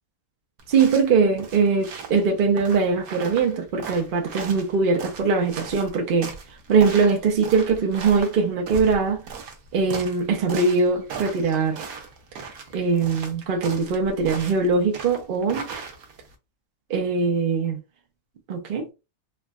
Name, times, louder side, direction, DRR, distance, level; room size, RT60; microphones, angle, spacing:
sound 1, 0.6-16.3, right 5 dB, 80° right, 1.1 m, -38 dB
voice 1, 0.7-6.3 6.7-9.2 9.7-11.8 12.7-15.7 16.9-17.8 18.5-18.9, right 4 dB, 65° right, 0.5 m, -21 dB
3.4 x 2.0 x 2.3 m
omnidirectional pair, 1.5 m